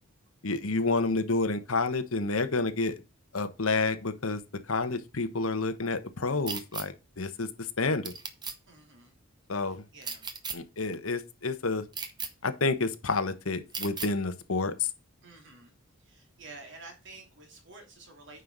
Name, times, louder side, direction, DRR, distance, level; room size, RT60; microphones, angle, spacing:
voice 1, 0.4-2.9 3.3-4.4 4.7-7.5 7.8-8.1 9.5-9.8 10.5-11.8 12.4-14.9, left 3 dB, 75° left, 1.2 m, -29 dB
sound 1, 6.5-6.9 8.0-8.6 10.0-10.6 11.9-12.3 13.7-14.1, right 5 dB, 20° right, 0.9 m, -36 dB
voice 2, 8.7-9.2 9.7-10.3 15.2-15.8 16.0-18.4, right 3 dB, 55° right, 3.1 m, -50 dB
9.5 x 5.6 x 4.0 m
head